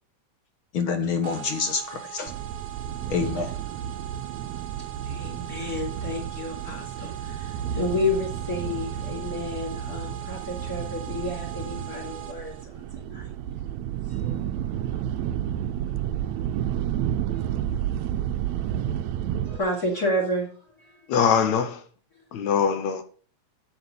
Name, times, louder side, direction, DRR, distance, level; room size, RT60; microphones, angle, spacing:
voice 1, 0.7-2.3 3.1-3.6, left 5 dB, 55° left, 1.7 m, -27 dB
sound 1, 1.2-12.6, right 12 dB, 50° right, 1.4 m, -41 dB
sound 2, 2.3-19.6, right 10 dB, 75° right, 1.9 m, -31 dB
voice 2, 5.0-13.3 14.1-14.8 16.3-16.4 17.3-17.7 18.3-18.5 19.2-21.1 22.2-22.3, left 1 dB, 30° left, 3.5 m, -31 dB
voice 3, 21.1-21.8 22.3-23.0, left 7 dB, 70° left, 2.2 m, -22 dB
8.0 x 8.0 x 6.9 m
omnidirectional pair, 3.4 m